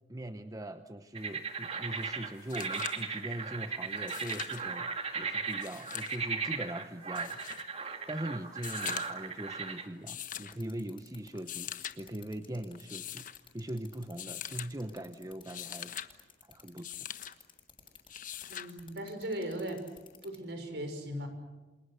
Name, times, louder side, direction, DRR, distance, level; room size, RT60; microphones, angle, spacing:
voice 1, 0.1-4.9 5.1-7.4 8.1-13.3 13.5-15.9 16.4-16.9, right 1 dB, 20° right, 9 dB, 0.9 m, -41 dB
sound 1, 1.1-9.9, right 5 dB, 35° right, 2.2 m, -37 dB
sound 2, 2.0-2.1 2.4-3.1 4.0-4.6 5.5-6.2 7.1-7.6 8.5-9.3 10.1-10.6 11.3-12.0 12.7-13.4 14.2-14.7 15.3-16.1 16.8-17.3 18.1-18.7 20.1-20.2, left 10 dB, 50° left, 1.2 m, -42 dB
sound 3, 10.5-20.4, left 7 dB, 30° left, 6.4 m, -54 dB
voice 2, 18.5-19.8 20.2-21.3, right 1 dB, 65° right, 7 dB, 5.9 m, -38 dB
28.5 x 27.0 x 6.4 m, 1.2 s
head